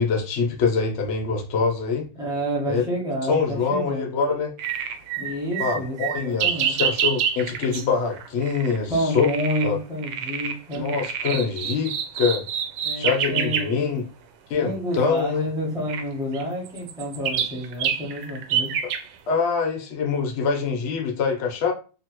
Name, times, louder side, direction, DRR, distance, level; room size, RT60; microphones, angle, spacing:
voice 1, 0.0-2.0 2.7-2.8 3.3-4.5 5.6-9.3 9.6-9.8 10.7-12.4 12.9-14.0 14.5-15.5 19.3-21.7, left 5 dB, 70° left, 2 dB, 0.6 m, -24 dB
voice 2, 2.2-4.1 5.2-6.7 8.9-10.9 12.8-13.7 14.5-18.7, equal, 5° right, -4 dB, 0.5 m, -29 dB
sound 1, 4.6-7.8 8.1-8.8 9.1-9.7 10.0-13.7 15.0-15.1 15.9-16.0 16.3-19.0, right 8 dB, 75° right, 1.2 m, -27 dB
3.0 x 2.6 x 2.9 m, 0.35 s
omnidirectional pair, 2.0 m